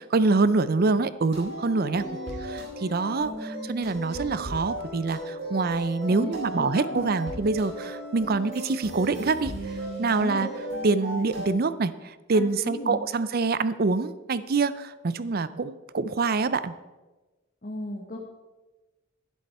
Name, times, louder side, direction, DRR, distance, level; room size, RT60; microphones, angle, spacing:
voice 1, 0.0-2.0 2.4-10.5 10.8-16.7, right 3 dB, 45° right, 15 dB, 0.5 m, -26 dB
sound 1, 1.3-11.5, right 1 dB, 65° right, 4.6 m, -36 dB
voice 2, 6.1-7.1 10.2-10.5 12.3-13.0 17.6-18.2, left 1 dB, 40° left, -1 dB, 1.3 m, -35 dB
11.5 x 11.0 x 4.3 m, 1.2 s
head